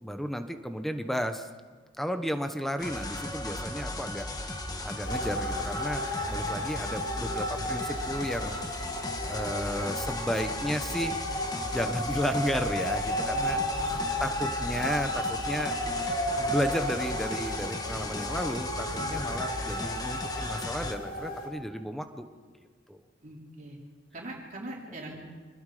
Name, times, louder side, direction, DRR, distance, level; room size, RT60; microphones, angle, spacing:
voice 1, 0.0-1.5 2.0-8.6 9.3-11.2 11.6-13.6 14.2-15.8 16.4-22.2 22.9-23.0, equal, ahead, 7 dB, 1.2 m, -33 dB
sound 1, 2.8-20.9, left 1 dB, 20° left, 1.5 m, -36 dB
sound 2, 5.0-21.5, left 1 dB, 50° left, 4.9 m, -34 dB
voice 2, 13.3-14.1 18.9-19.3 23.2-23.8 24.1-25.2, right 1 dB, 45° right, -3 dB, 3.9 m, -42 dB
26.0 x 20.0 x 5.1 m, 1.5 s
head